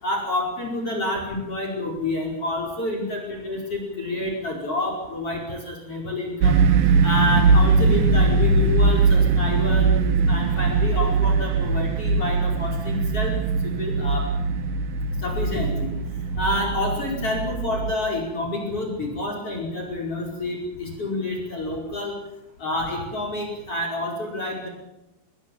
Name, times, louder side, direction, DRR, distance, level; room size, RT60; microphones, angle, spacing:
voice 1, 0.0-6.6 7.0-9.9 10.3-13.3 13.6-14.3 15.2-16.0 16.4-22.2 22.6-24.7, left 2 dB, 35° left, 1 dB, 5.7 m, -28 dB
sound 1, 6.4-17.9, right 4 dB, 65° right, 2.7 m, -21 dB
26.0 x 22.0 x 7.3 m, 0.93 s
omnidirectional pair, 4.7 m